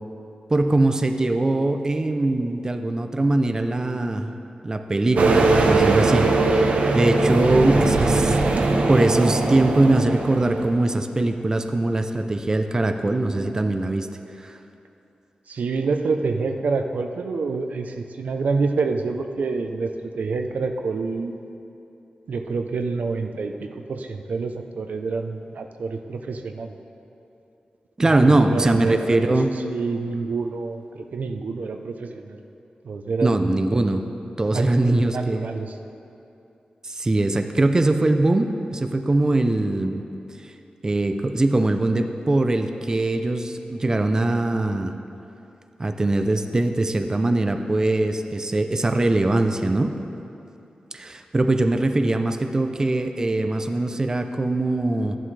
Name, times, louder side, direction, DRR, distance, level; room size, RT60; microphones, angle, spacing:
voice 1, 0.5-4.3 4.6-6.5 6.9-8.4 8.9-14.1 14.4-14.6 28.0-29.5 33.2-34.0 34.4-35.5 36.8-40.0 40.8-44.9 45.8-49.9 50.9-55.2, right 2 dB, 25° right, 7 dB, 0.5 m, -21 dB
sound 1, 5.2-10.7, right 3 dB, 65° right, 0.9 m, -20 dB
voice 2, 15.5-21.4 22.3-26.8 28.2-32.4 32.8-33.5 34.5-35.7, right 4 dB, 90° right, 5 dB, 0.6 m, -27 dB
13.5 x 11.0 x 3.3 m, 2.8 s
wide cardioid pair, 150°, 3 cm